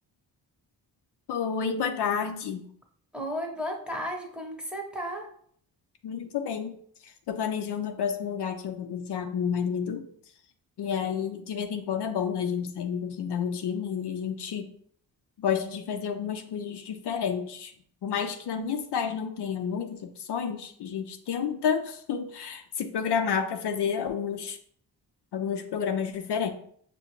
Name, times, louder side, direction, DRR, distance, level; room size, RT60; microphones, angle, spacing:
voice 1, 1.3-2.6 6.0-6.7 7.3-10.0 10.8-14.7 15.4-17.7 18.0-24.6 25.3-26.5, left 7 dB, 70° left, 6 dB, 0.5 m, -30 dB
voice 2, 3.1-5.3 18.6-18.7, equal, ahead, 1 dB, 0.9 m, -34 dB
5.6 x 2.2 x 3.0 m, 0.62 s
cardioid pair, 60°, 42 cm